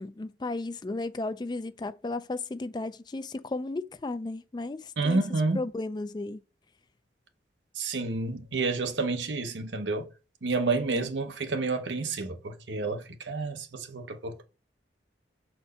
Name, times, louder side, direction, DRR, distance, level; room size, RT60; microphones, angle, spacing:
voice 1, 0.0-5.2 5.5-6.4 10.9-11.1, left 2 dB, 25° left, 0.3 m, -34 dB
voice 2, 5.0-5.6 7.8-10.1 10.4-14.4, right 3 dB, 90° right, 0.9 m, -29 dB
6.7 x 4.4 x 4.2 m
head